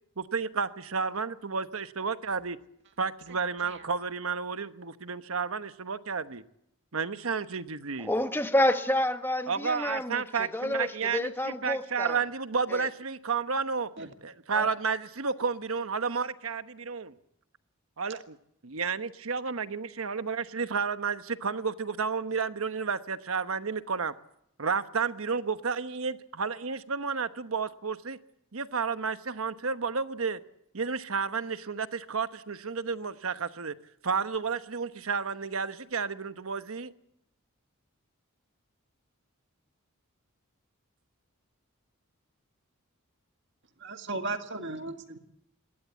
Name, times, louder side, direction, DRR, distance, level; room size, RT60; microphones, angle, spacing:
voice 1, 0.2-2.6 3.0-6.4 6.9-8.1 9.5-13.9 14.2-17.2 18.0-18.4 18.6-24.1 24.6-28.2 28.5-30.4 30.7-33.7 34.0-36.9, right 5 dB, 75° right, 11 dB, 1.1 m, -31 dB
voice 2, 8.0-12.2 12.7-12.9, left 1 dB, 10° left, 8 dB, 1.4 m, -29 dB
voice 3, 43.8-45.2, right 3 dB, 55° right, 7 dB, 2.0 m, -35 dB
21.5 x 18.0 x 8.2 m, 0.77 s
head